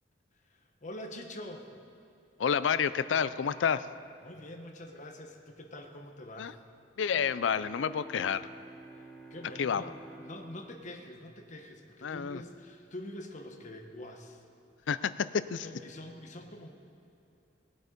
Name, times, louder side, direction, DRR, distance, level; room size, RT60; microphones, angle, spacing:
voice 1, 0.5-1.7 4.2-6.6 8.9-9.9 10.2-14.4 15.6-16.7, left 1 dB, 40° left, 3 dB, 1.2 m, -45 dB
voice 2, 2.4-3.9 6.4-6.5 7.0-8.5 9.6-9.8 12.0-12.4 14.9-15.1 15.5-15.7, left 7 dB, 80° left, 15 dB, 0.4 m, -29 dB
Bowed string instrument, 7.1-12.2, right 2 dB, 5° left, 0.9 m, -51 dB
18.5 x 8.0 x 5.2 m, 2.8 s
head